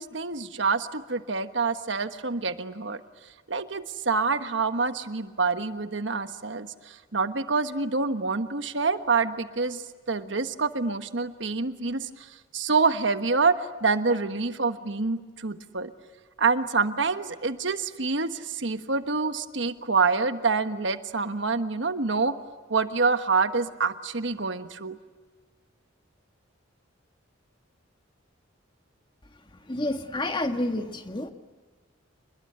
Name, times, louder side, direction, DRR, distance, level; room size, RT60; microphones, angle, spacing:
voice 1, 0.0-3.0 3.5-9.8 10.1-15.9 16.4-22.3 22.7-25.0, right 4 dB, 65° right, 9 dB, 1.3 m, -27 dB
voice 2, 29.7-31.3, left 1 dB, 25° left, 6 dB, 1.6 m, -29 dB
28.5 x 21.5 x 9.5 m, 1.4 s
head